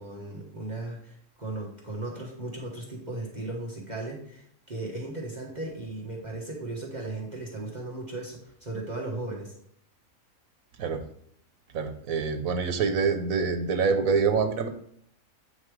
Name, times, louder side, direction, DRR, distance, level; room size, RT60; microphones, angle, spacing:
voice 1, 0.0-9.5, right 2 dB, 35° right, -2 dB, 1.3 m, -36 dB
voice 2, 11.7-14.7, right 5 dB, 85° right, 6 dB, 1.3 m, -25 dB
8.7 x 5.5 x 3.3 m, 0.67 s
omnidirectional pair, 1.4 m